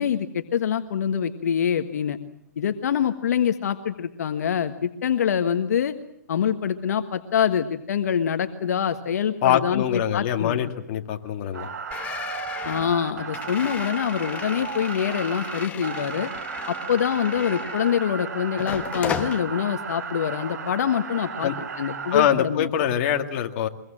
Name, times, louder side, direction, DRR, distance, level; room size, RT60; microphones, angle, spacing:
voice 1, 0.0-2.2 2.6-5.9 6.3-10.6 12.6-16.3 16.7-21.5 21.8-22.7, left 8 dB, 65° left, 8 dB, 1.4 m, -25 dB
voice 2, 9.4-11.7 21.4-21.6 22.1-23.7, left 10 dB, 35° left, 4 dB, 2.2 m, -24 dB
sound 1, 11.5-22.3, right 6 dB, 75° right, 3.2 m, -35 dB
sound 2, 11.9-18.1 18.6-19.4, left 8 dB, 15° left, 1.2 m, -35 dB
24.0 x 22.5 x 7.6 m, 0.78 s
hypercardioid pair, 155°, 9 cm